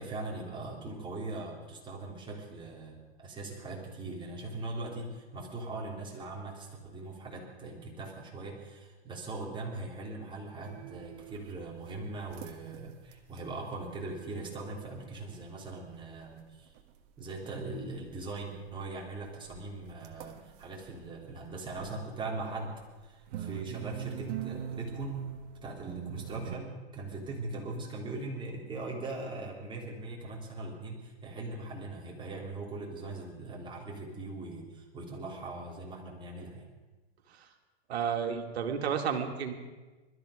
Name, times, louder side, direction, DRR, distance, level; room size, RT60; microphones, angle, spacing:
voice 1, 0.0-16.7 17.2-22.7 23.0-25.2 25.6-36.7, right 2 dB, 15° right, -2 dB, 3.4 m, -40 dB
sound 1, 10.6-13.6 14.0-14.2 14.5-14.6 15.0-15.1 15.3-16.3 16.7-17.2 17.5-22.0 22.4-26.6, right 9 dB, 40° right, 1.5 m, -42 dB
voice 2, 37.9-39.5, right 7 dB, 70° right, 5 dB, 2.4 m, -31 dB
21.0 x 13.0 x 5.1 m, 1.2 s
hypercardioid pair, 130°, 33 cm